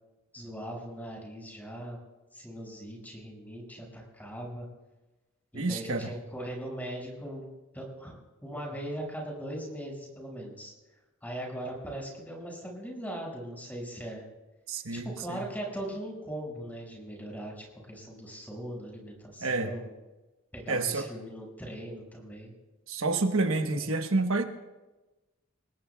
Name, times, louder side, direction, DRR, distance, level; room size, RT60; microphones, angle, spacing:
voice 1, 0.3-2.0 2.3-4.7 5.5-7.5 7.7-10.7 11.2-14.2 14.9-19.9 20.5-22.5, right 1 dB, 10° left, -2 dB, 5.7 m, -40 dB
voice 2, 5.5-6.1 14.7-15.4 19.4-19.7 20.7-21.1 22.9-24.4, right 3 dB, 90° right, 6 dB, 1.2 m, -29 dB
28.5 x 20.0 x 2.3 m, 1.1 s
head